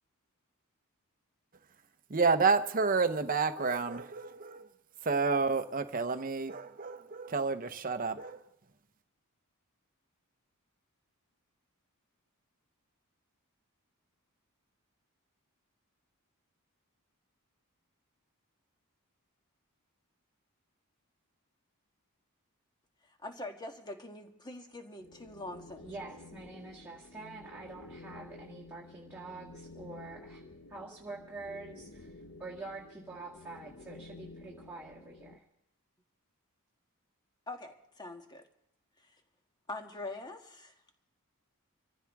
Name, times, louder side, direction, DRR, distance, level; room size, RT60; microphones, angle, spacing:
voice 1, 2.1-4.7 5.0-8.4, right 4 dB, 40° right, 0.8 m, -30 dB
voice 2, 23.0-25.9 37.5-38.5 39.0-39.1 39.7-40.7, left 2 dB, 20° left, 1.5 m, -44 dB
sound 1, 25.0-35.4, left 2 dB, 55° left, 0.8 m, -51 dB
voice 3, 25.8-30.4 30.7-32.1 32.4-35.4, right 3 dB, 10° right, 1.8 m, -46 dB
25.5 x 15.0 x 3.6 m
head